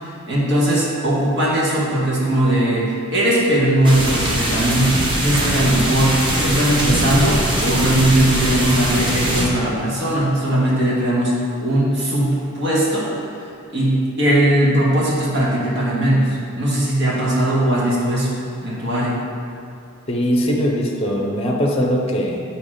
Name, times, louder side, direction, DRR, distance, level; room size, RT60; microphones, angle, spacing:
voice 1, 0.0-11.3 11.6-13.1 13.7-16.3 16.6-19.2, right 1 dB, 55° right, -6 dB, 1.6 m, -19 dB
sound 1, 3.8-9.5, right 1 dB, 25° right, 0.8 m, -21 dB
voice 2, 20.1-22.4, equal, 30° left, 0 dB, 0.6 m, -20 dB
8.2 x 3.0 x 4.9 m, 2.5 s
head